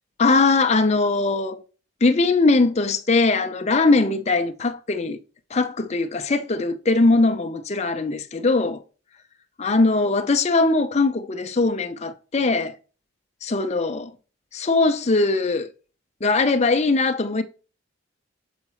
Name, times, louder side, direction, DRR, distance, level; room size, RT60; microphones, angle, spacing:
voice 1, 0.2-1.6 2.0-5.2 5.5-8.8 9.6-12.7 13.4-14.1 14.5-15.7 16.2-17.4, left 3 dB, 30° left, 0.5 m, -20 dB
7.1 x 4.8 x 4.3 m
head